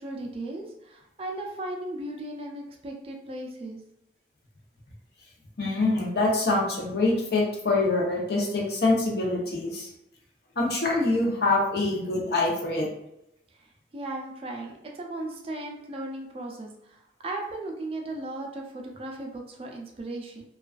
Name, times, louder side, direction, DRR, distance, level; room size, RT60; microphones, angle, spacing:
voice 1, 0.0-3.8 13.9-17.0 17.2-20.4, right 2 dB, 30° right, 1 dB, 0.3 m, -36 dB
voice 2, 5.6-9.9 10.6-12.9, left 2 dB, 65° left, -3 dB, 0.7 m, -25 dB
2.3 x 2.3 x 2.3 m, 0.80 s
head